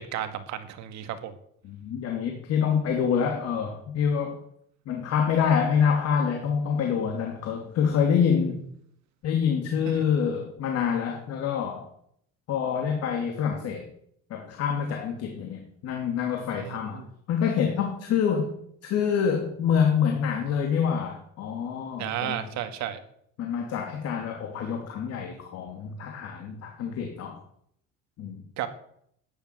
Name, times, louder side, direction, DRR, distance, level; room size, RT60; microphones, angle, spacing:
voice 1, 0.0-1.3 9.8-10.0 16.5-17.1 22.0-23.0 28.6-28.7, right 11 dB, 60° right, 9 dB, 2.1 m, -33 dB
voice 2, 1.6-4.4 4.9-8.6 9.2-11.9 12.5-13.9 14.3-17.0 17.3-18.5 18.8-22.5 23.4-27.4 28.2-28.4, left 7 dB, 50° left, 3 dB, 2.7 m, -26 dB
14.0 x 10.5 x 9.4 m, 0.70 s
cardioid pair, 150°, 32 cm